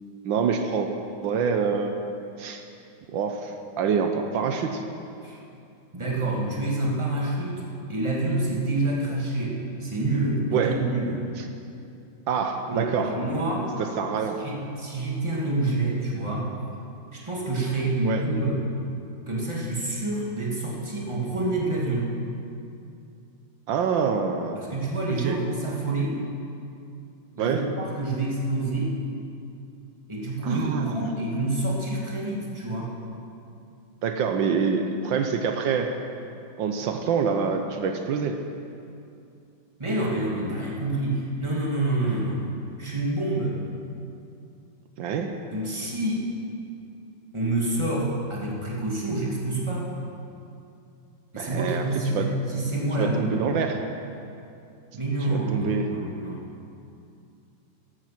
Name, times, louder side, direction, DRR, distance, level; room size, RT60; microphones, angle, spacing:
voice 1, 0.2-0.9 1.2-1.9 2.4-2.6 3.1-4.8 10.5-10.8 11.4-11.5 12.3-13.1 13.8-14.4 18.0-18.2 23.7-24.6 25.2-25.4 27.4-27.7 30.4-31.1 34.0-35.9 36.6-38.4 45.0-45.3 51.4-52.3 53.0-53.8 55.3-55.9, right 6 dB, 80° right, 5 dB, 1.5 m, -26 dB
voice 2, 5.9-11.2 12.7-13.8 14.4-16.5 17.1-18.6 19.3-22.1 24.6-26.2 27.3-29.0 30.1-32.9 39.8-42.4 42.8-43.6 45.5-46.3 47.3-49.9 51.3-53.4 55.0-56.4, right 2 dB, 15° right, -4 dB, 2.3 m, -27 dB
15.0 x 11.5 x 6.0 m, 2.6 s
omnidirectional pair, 2.1 m